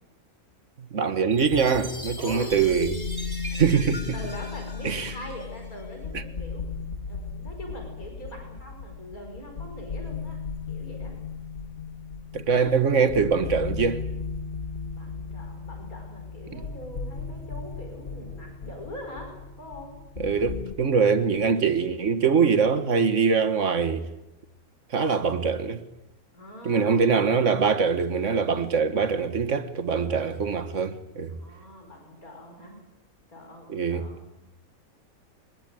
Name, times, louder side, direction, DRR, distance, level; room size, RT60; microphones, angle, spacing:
voice 1, 0.8-3.0 3.5-4.2 4.8-5.1 6.1-6.2 12.3-14.0 16.5-16.6 20.2-24.1 24.9-25.8 26.6-31.4 33.7-34.1, right 5 dB, 55° right, 1.9 m, -23 dB
sound 1, 1.3-20.7, left 5 dB, 40° left, 1.6 m, -36 dB
Chime, 1.3-5.8, equal, 15° right, 3.4 m, -41 dB
voice 2, 2.2-2.6 4.1-6.6 7.1-10.4 10.7-11.1 14.9-20.0 26.3-27.0 31.3-32.8 33.3-34.6, left 1 dB, 70° left, 6.0 m, -42 dB
23.5 x 21.0 x 9.2 m
omnidirectional pair, 1.6 m